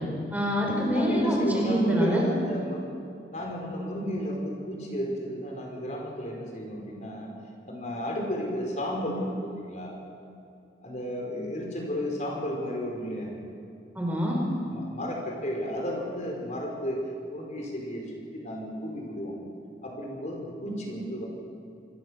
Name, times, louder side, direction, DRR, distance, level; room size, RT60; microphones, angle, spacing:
voice 1, 0.3-2.2 13.9-14.4, equal, 10° right, -2 dB, 4.7 m, -25 dB
voice 2, 0.9-2.8 3.3-7.3 7.6-10.0 10.8-13.3 14.7-17.0 17.3-18.0 18.3-19.3 19.8-21.3, equal, 45° left, 0 dB, 5.1 m, -32 dB
27.5 x 21.5 x 6.5 m, 2.5 s
head